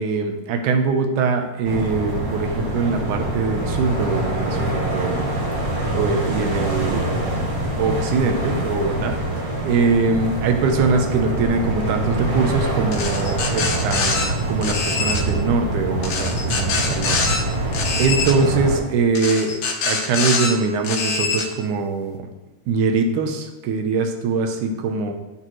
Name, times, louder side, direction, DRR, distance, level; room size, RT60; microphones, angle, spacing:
voice 1, 0.0-5.3 5.9-7.1 7.8-9.2 9.6-17.2 17.7-22.3 22.7-25.1, right 4 dB, 75° right, 5 dB, 2.2 m, -22 dB
sound 1, 1.6-18.8, right 1 dB, 50° right, 1.0 m, -25 dB
sound 2, 12.9-14.3 14.6-15.2 16.0-17.4 17.7-18.3 19.1-20.5 20.8-21.4, left 4 dB, 80° left, 1.1 m, -24 dB
12.0 x 6.5 x 3.1 m, 1.1 s
omnidirectional pair, 3.8 m